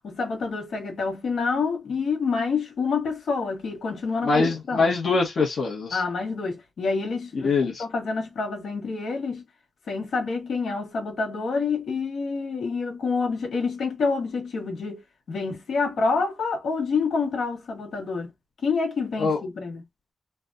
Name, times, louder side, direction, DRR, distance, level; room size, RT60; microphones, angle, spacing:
voice 1, 0.0-4.9 5.9-9.4 9.9-15.0 15.3-18.3 18.6-19.8, left 4 dB, 80° left, 1.3 m, -27 dB
voice 2, 4.2-6.0 7.3-7.8 19.2-19.4, left 4 dB, 65° left, 1.0 m, -23 dB
3.4 x 2.3 x 2.4 m
wide cardioid pair, 130°, 0 cm